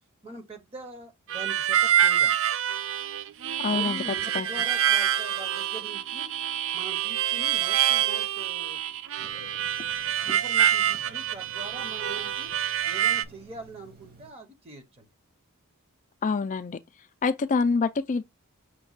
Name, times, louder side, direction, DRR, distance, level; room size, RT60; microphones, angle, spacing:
voice 1, 0.2-2.3 3.7-6.3 6.7-8.8 10.2-12.5 12.9-15.1, right 2 dB, 30° right, 0.8 m, -43 dB
Harmonica, 1.3-13.2, right 10 dB, 60° right, 0.4 m, -26 dB
voice 2, 3.6-4.0 4.3-4.5 16.2-16.8 17.2-18.2, left 4 dB, 35° left, 0.4 m, -26 dB
Telephone, 9.2-14.3, right 2 dB, 45° right, 1.1 m, -52 dB
5.9 x 2.2 x 3.9 m
head